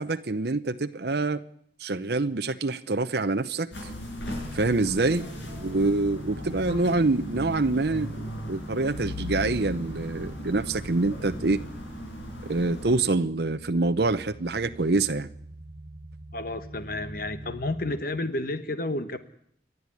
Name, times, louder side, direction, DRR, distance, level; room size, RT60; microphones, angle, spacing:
voice 1, 0.0-1.4 1.8-3.9 4.5-11.6 12.5-15.3, right 3 dB, 60° right, 0.8 m, -26 dB
sound 1, 3.7-13.0, left 1 dB, 80° left, 6.4 m, -38 dB
sound 2, 4.3-18.0, right 1 dB, 25° right, 1.3 m, -43 dB
voice 2, 16.3-19.2, left 2 dB, 50° left, 1.1 m, -31 dB
29.5 x 11.0 x 9.8 m
head